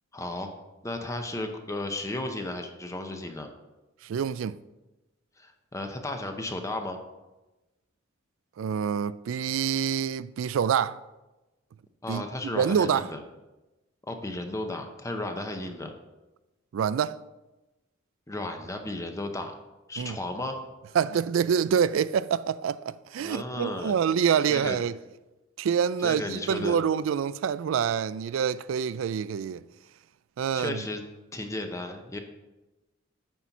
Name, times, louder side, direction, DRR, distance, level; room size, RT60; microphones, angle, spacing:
voice 1, 0.1-0.5 0.8-3.5 5.4-7.0 12.0-13.2 14.1-15.9 18.3-19.6 19.9-20.6 23.2-24.0 24.5-24.8 26.0-26.8 30.5-31.0 31.3-32.2, left 2 dB, 15° left, 0.7 m, -34 dB
voice 2, 4.0-4.6 8.6-11.0 12.1-12.2 12.5-13.1 16.7-17.2 20.0-20.2 20.9-24.9 25.6-29.6 30.4-30.8, right 7 dB, 75° right, 0.3 m, -26 dB
9.1 x 4.3 x 5.9 m
head